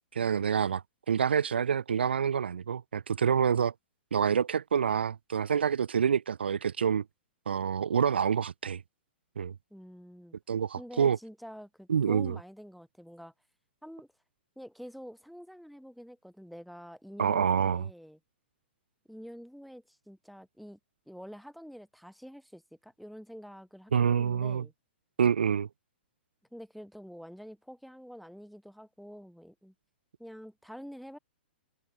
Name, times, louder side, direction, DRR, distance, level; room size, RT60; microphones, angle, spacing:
voice 1, 0.1-3.7 4.1-7.0 7.5-8.8 9.4-9.5 10.5-11.2 11.9-12.4 17.2-17.9 23.9-24.6 25.2-25.7, right 7 dB, 80° right, 0.4 m, -27 dB
voice 2, 9.7-10.4 10.8-13.3 13.8-14.1 14.6-18.2 19.1-20.8 21.1-24.7 26.5-29.7 30.2-31.2, equal, ahead, 2.1 m, -47 dB
hypercardioid pair, 115°, 6 cm